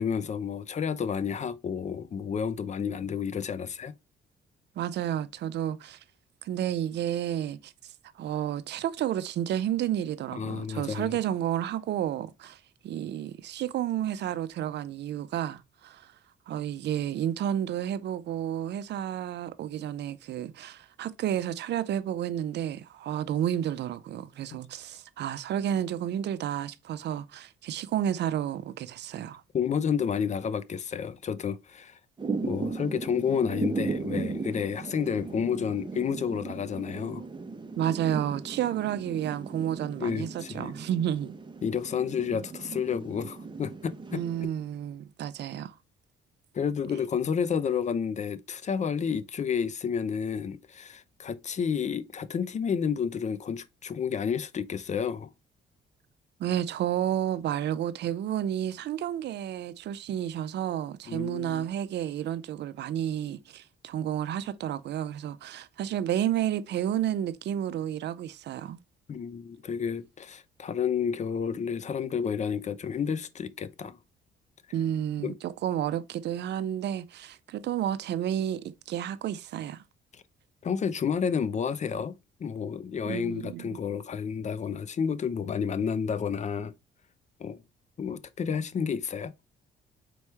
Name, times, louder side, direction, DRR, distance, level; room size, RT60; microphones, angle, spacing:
voice 1, 0.0-3.9 10.3-11.2 29.5-32.0 32.4-37.2 40.0-40.7 41.6-44.2 46.5-55.3 61.1-61.7 69.1-74.0 75.2-75.3 80.6-82.1 82.4-86.7 87.4-87.6 88.0-89.3, left 7 dB, 35° left, 0.4 m, -30 dB
voice 2, 4.8-6.0 6.4-7.7 8.2-16.1 16.5-29.4 37.8-41.3 44.1-45.7 56.4-68.8 74.7-79.8 83.0-83.7, right 10 dB, 60° right, 0.5 m, -31 dB
Thunder / Rain, 32.2-44.4, right 4 dB, 25° right, 0.7 m, -37 dB
4.5 x 3.0 x 3.3 m
cardioid pair, 90°, 20 cm